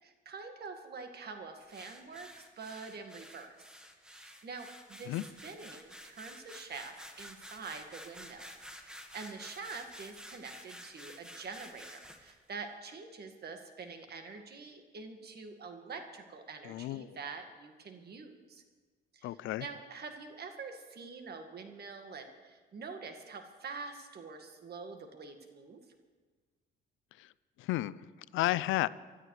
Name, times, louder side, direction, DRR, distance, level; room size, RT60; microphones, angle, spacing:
voice 1, 0.0-3.7 4.1-5.2 5.4-8.5 8.8-18.6 19.1-25.8, right 4 dB, 55° right, 5 dB, 1.9 m, -46 dB
sound 1, 1.7-12.3, equal, 5° right, 1.7 m, -51 dB
voice 2, 16.6-17.2 19.2-19.7 27.2-27.3 27.6-28.1 28.3-28.9, left 16 dB, 90° left, 17 dB, 0.4 m, -32 dB
25.0 x 12.5 x 3.3 m, 1.5 s
cardioid pair, 90°, 20 cm